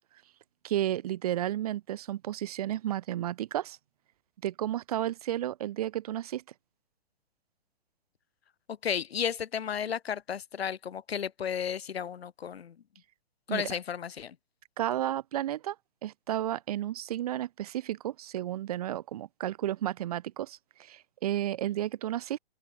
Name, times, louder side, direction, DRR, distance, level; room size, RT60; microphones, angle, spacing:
voice 1, 0.6-3.8 4.4-6.4 13.5-13.7 14.8-15.8 16.0-22.4, right 12 dB, 40° right, 0.7 m, -32 dB
voice 2, 8.8-12.7 13.5-14.3, left 8 dB, 90° left, 1.5 m, -33 dB
open air
hypercardioid pair, 160°, 30 cm